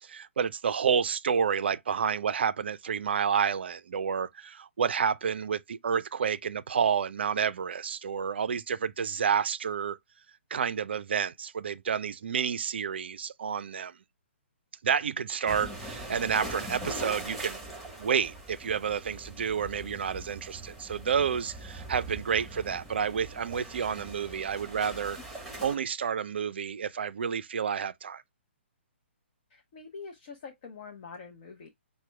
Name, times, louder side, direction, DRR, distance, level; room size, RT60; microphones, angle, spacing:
voice 1, 0.0-10.0 10.5-14.0 14.8-17.6 18.0-25.2 25.6-28.2, right 7 dB, 60° right, 0.4 m, -29 dB
sound 1, 15.5-25.8, right 1 dB, ahead, 1.4 m, -42 dB
voice 2, 29.5-31.7, left 5 dB, 45° left, 0.8 m, -45 dB
5.9 x 2.2 x 3.2 m
figure-of-eight pair, 130°, 7 cm